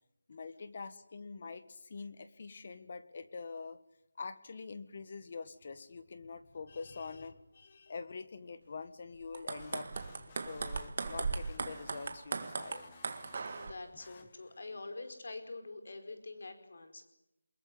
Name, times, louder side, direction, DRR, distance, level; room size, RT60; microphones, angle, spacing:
voice 1, 0.3-3.8 4.1-9.9 10.4-12.9, left 4 dB, 35° left, 12 dB, 1.6 m, -45 dB
sound 1, 9.2-13.7, right 4 dB, 40° right, 1.9 m, -38 dB
sound 2, 9.6-14.8, left 6 dB, 20° left, 1.7 m, -58 dB
voice 2, 13.5-17.0, left 3 dB, 55° left, 7 dB, 4.9 m, -45 dB
24.0 x 21.5 x 9.5 m, 0.88 s
figure-of-eight pair, 170°, 0 cm